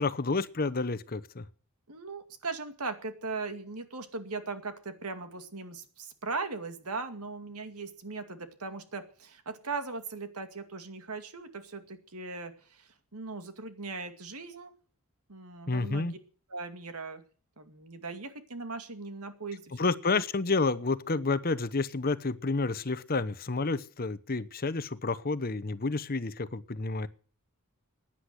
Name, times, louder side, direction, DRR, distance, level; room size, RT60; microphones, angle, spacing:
voice 1, 0.0-1.5 15.7-16.1 19.7-27.1, left 3 dB, 40° left, 0.8 m, -30 dB
voice 2, 1.9-14.7 15.3-16.2 16.5-17.2 17.6-19.8 20.1-20.2, right 3 dB, 90° right, 2.3 m, -39 dB
16.0 x 10.0 x 8.0 m
head